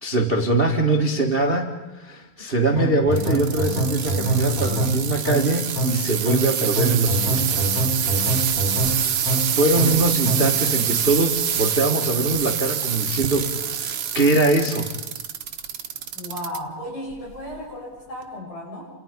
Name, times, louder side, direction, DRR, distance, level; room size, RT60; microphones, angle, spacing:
voice 1, 0.0-7.6 8.0-8.5 9.3-14.9, right 2 dB, 25° right, 3 dB, 1.3 m, -22 dB
sound 1, 2.8-10.6, right 1 dB, 30° left, 1.7 m, -25 dB
sound 2, 3.1-16.6 17.1-17.6 18.2-18.3, right 8 dB, 55° right, 1.7 m, -26 dB
voice 2, 16.1-18.9, equal, 70° left, -2 dB, 9.8 m, -34 dB
29.5 x 28.5 x 5.4 m, 1.1 s
omnidirectional pair, 4.1 m